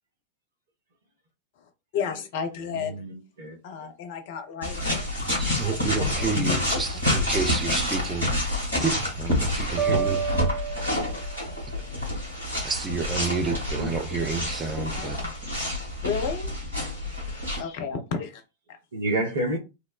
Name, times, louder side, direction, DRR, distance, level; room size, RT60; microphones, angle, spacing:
voice 1, 1.6-3.0 3.6-5.0 5.4-5.8 6.2-6.3 6.7-6.8 14.9-15.4 16.0-16.5 17.3-18.4, left 6 dB, 50° left, 0.6 m, -33 dB
voice 2, 2.7-3.9 13.3-13.9 18.9-19.6, right 1 dB, 65° right, 0.7 m, -30 dB
sound 1, 4.6-17.6, left 1 dB, 85° right, 1.3 m, -28 dB
voice 3, 5.3-8.3 8.8-10.2 12.6-15.2, right 4 dB, 20° right, 0.5 m, -29 dB
sound 2, 9.8-11.7, right 7 dB, 45° right, 0.9 m, -30 dB
2.9 x 2.1 x 2.3 m
figure-of-eight pair, 90°, 0 cm